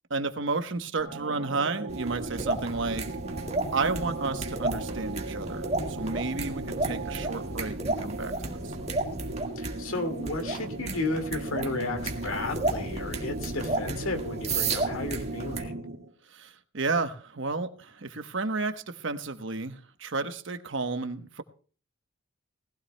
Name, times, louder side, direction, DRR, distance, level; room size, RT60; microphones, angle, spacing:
voice 1, 0.1-3.1 3.7-8.7 16.3-21.4, right 3 dB, 65° right, 9 dB, 1.0 m, -32 dB
sound 1, 1.0-16.1, right 2 dB, 80° right, 1.9 m, -37 dB
sound 2, 1.9-15.6, right 2 dB, 30° right, 1.7 m, -33 dB
voice 2, 9.6-15.9, left 2 dB, 90° left, 6 dB, 2.0 m, -33 dB
19.5 x 15.5 x 2.2 m, 0.40 s
head